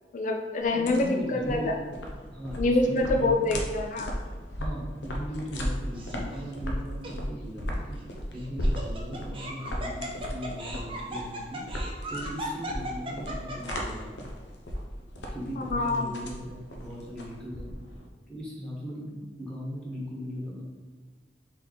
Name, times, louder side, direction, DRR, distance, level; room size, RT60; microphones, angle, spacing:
voice 1, 0.1-1.7 2.6-4.1 15.7-16.1, left 2 dB, 45° left, 3 dB, 0.5 m, -26 dB
sound 1, 0.6-18.1, equal, 90° left, 0.7 m, -35 dB
voice 2, 0.7-1.7 2.3-3.6 4.6-8.0 8.3-11.6 12.1-14.3 15.3-17.7 18.3-20.6, equal, 5° left, -7 dB, 1.3 m, -38 dB
Laughter, 6.0-6.4 7.0-7.1 8.4-14.0, equal, 30° right, 0.7 m, -37 dB
3.9 x 3.3 x 4.0 m, 1.4 s
head